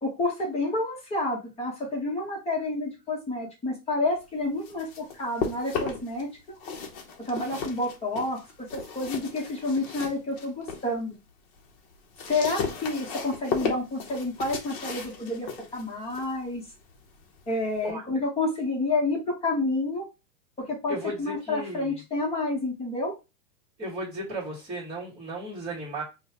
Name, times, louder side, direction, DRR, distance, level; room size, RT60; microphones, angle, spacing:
voice 1, 0.0-6.3 7.3-8.4 8.7-11.2 12.2-16.6 17.5-20.1 20.6-23.1, left 2 dB, 15° left, -1 dB, 1.1 m, -29 dB
sound 1, 4.4-6.2 6.5-10.9 11.3-17.9, left 5 dB, 35° left, 1.0 m, -36 dB
voice 2, 20.9-21.9 23.8-26.0, right 1 dB, 15° right, -11 dB, 1.6 m, -35 dB
5.2 x 2.4 x 2.9 m, 0.26 s
supercardioid pair, 150°, 47 cm